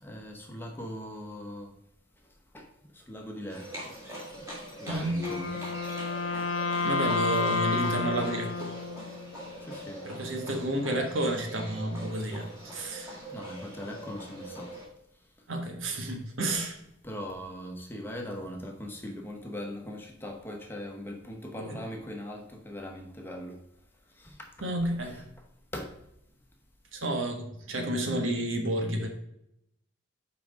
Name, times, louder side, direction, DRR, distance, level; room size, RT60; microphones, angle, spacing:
voice 1, 0.0-1.7 2.5-2.7 2.9-3.9 4.8-5.7 9.6-10.0 10.4-10.5 13.1-14.8 17.0-23.6 24.2-24.5 25.1-25.2 25.7-25.9, equal, 10° left, 1 dB, 0.9 m, -40 dB
Livestock farm animals working animals, 3.5-14.9, right 1 dB, 15° right, 1.9 m, -43 dB
voice 2, 4.9-5.3 6.8-8.7 10.0-13.2 15.5-16.8 21.6-21.8 24.6-25.2 26.9-29.1, right 1 dB, 80° right, 3 dB, 1.3 m, -31 dB
Wind instrument woodwind instrument, 5.2-9.4, left 4 dB, 85° left, 0.6 m, -30 dB
5.8 x 4.8 x 5.1 m, 0.80 s
head